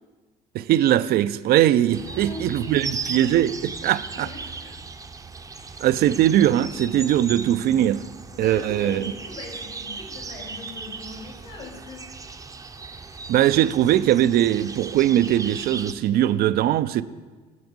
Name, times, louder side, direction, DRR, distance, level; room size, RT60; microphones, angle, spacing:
voice 1, 0.5-4.3 5.8-8.0 8.4-9.0 13.3-17.0, right 12 dB, 65° right, 0.4 m, -20 dB
sound 1, 1.9-15.9, right 4 dB, 20° right, 0.6 m, -37 dB
voice 2, 2.1-3.3 3.9-4.0 4.2-4.4 5.5-5.9 8.3-12.1, left 2 dB, 65° left, 3.1 m, -39 dB
9.4 x 7.1 x 5.3 m
cardioid pair, 110°, 17 cm